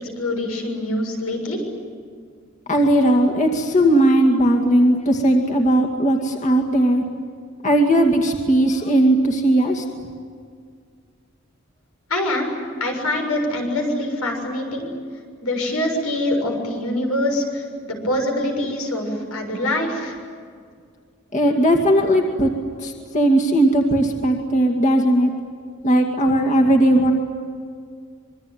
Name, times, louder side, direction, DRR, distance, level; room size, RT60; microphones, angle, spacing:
voice 1, 0.2-1.6 12.1-12.5 12.8-14.9 15.4-20.1, left 1 dB, 90° left, 3 dB, 6.8 m, -24 dB
voice 2, 2.7-7.0 7.6-9.8 21.3-22.5 22.8-25.3 25.8-27.1, right 1 dB, 35° left, 2 dB, 2.2 m, -17 dB
26.5 x 23.5 x 9.5 m, 2.1 s
head